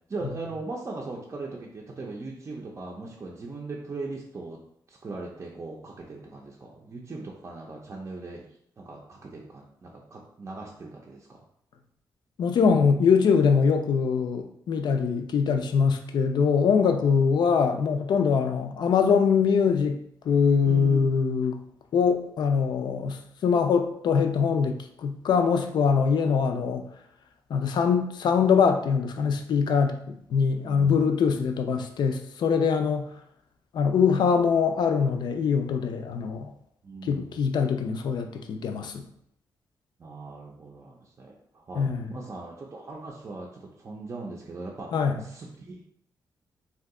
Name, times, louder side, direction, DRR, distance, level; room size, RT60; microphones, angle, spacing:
voice 1, 0.1-4.6 4.9-8.4 8.8-11.4 20.6-21.0 30.6-31.0 36.8-37.5 40.0-44.9 45.2-45.9, right 3 dB, 35° right, -2 dB, 0.5 m, -39 dB
voice 2, 12.4-20.0 20.3-21.5 21.9-26.8 27.5-33.1 33.7-36.5 37.0-39.0 41.7-42.1 44.9-45.2, left 6 dB, 70° left, 6 dB, 0.4 m, -23 dB
2.7 x 2.3 x 3.6 m, 0.69 s
cardioid pair, 90°, 8 cm